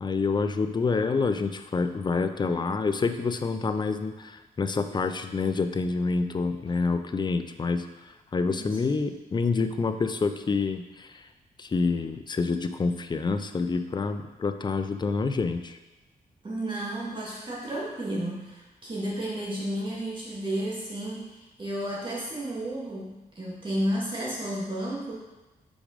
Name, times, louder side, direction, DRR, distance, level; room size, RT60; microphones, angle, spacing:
voice 1, 0.0-11.3 11.6-15.8, left 4 dB, 30° left, 8 dB, 0.5 m, -27 dB
voice 2, 16.4-25.1, right 1 dB, 35° right, -6 dB, 2.1 m, -32 dB
5.3 x 4.8 x 5.1 m, 1.1 s
cardioid pair, 95°, 15 cm